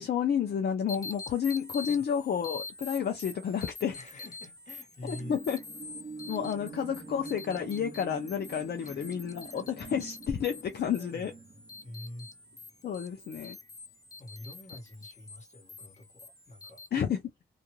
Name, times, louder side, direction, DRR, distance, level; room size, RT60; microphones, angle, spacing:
voice 1, 0.0-4.0 5.0-5.6 6.3-11.3 12.8-13.6 16.9-17.2, left 8 dB, 70° left, 0.4 m, -31 dB
sound 1, 0.9-16.9, left 3 dB, 20° left, 0.5 m, -46 dB
voice 2, 3.9-5.4 8.8-9.0 9.4-9.6 10.9-11.5 11.8-12.3 14.2-16.8, left 1 dB, 45° left, 1.2 m, -46 dB
sound 2, 4.9-12.7 13.2-13.3, right 4 dB, 30° right, 0.6 m, -46 dB
2.4 x 2.2 x 2.9 m
wide cardioid pair, 110°, 17 cm